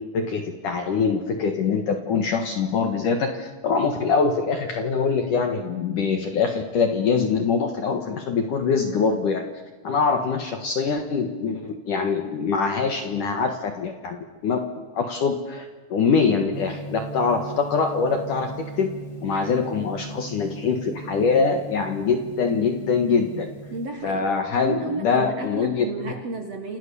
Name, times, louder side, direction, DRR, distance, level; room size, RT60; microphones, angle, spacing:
voice 1, 0.1-9.4 9.8-14.2 14.4-14.6 14.9-18.5 18.8-18.9 19.2-23.5 24.0-26.1, left 5 dB, 60° left, 5 dB, 2.3 m, -23 dB
Gong, 16.5-23.9, right 3 dB, 5° left, 7.1 m, -38 dB
voice 2, 23.7-24.2 24.5-26.8, right 4 dB, 80° right, 5 dB, 1.4 m, -32 dB
28.5 x 28.0 x 7.0 m, 1.3 s
omnidirectional pair, 5.7 m